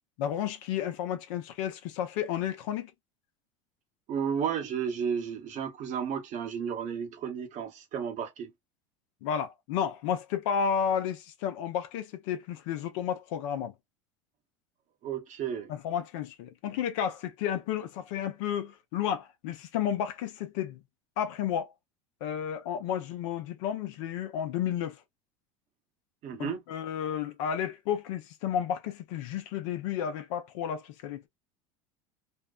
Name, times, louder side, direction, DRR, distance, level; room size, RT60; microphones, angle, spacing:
voice 1, 0.2-2.9 9.2-13.7 15.7-20.8 21.2-21.7 22.2-25.0 26.4-31.2, left 9 dB, 70° left, 0.7 m, -32 dB
voice 2, 4.1-8.5 15.0-15.7 26.2-26.6, right 7 dB, 50° right, 0.9 m, -33 dB
2.6 x 2.1 x 2.3 m
hypercardioid pair, 85°, 16 cm